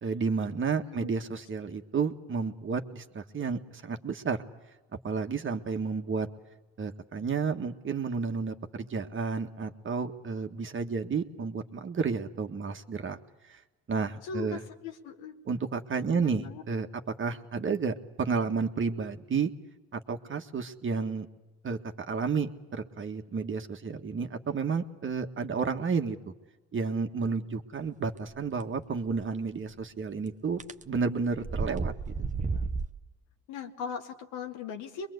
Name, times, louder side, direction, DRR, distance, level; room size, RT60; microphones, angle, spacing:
voice 1, 0.0-4.4 5.0-6.3 6.8-13.2 13.5-13.6 13.9-14.6 15.5-16.9 17.2-19.5 19.9-21.3 21.6-21.8 22.1-26.2 26.7-30.6 30.9-32.2, right 5 dB, 40° right, 6 dB, 1.7 m, -31 dB
voice 2, 0.8-1.2 1.6-1.7 14.2-15.4 16.1-16.6 33.5-35.1, left 6 dB, 80° left, 4 dB, 2.0 m, -39 dB
sound 1, 29.1-29.2 30.6-30.8 31.3-32.9, right 4 dB, 20° right, 1.1 m, -32 dB
23.0 x 22.0 x 8.1 m, 1.1 s
supercardioid pair, 75°, 33 cm